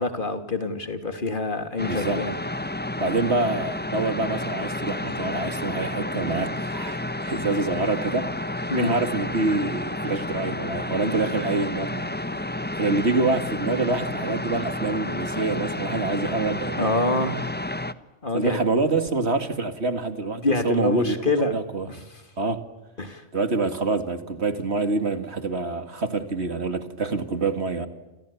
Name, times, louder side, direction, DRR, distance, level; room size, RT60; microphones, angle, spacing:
voice 1, 0.0-2.3 8.7-9.0 16.8-17.4 18.2-18.6 20.4-21.6 21.9-22.0 23.0-23.2, left 2 dB, 45° left, 3.1 m, -26 dB
sound 1, 1.8-17.9, left 1 dB, 10° left, 1.1 m, -31 dB
voice 2, 1.8-2.2 3.0-12.4 12.8-16.9 18.3-21.1 21.5-21.9 22.4-22.6 23.3-27.9, right 3 dB, 60° right, 2.4 m, -26 dB
29.0 x 29.0 x 7.1 m
omnidirectional pair, 1.3 m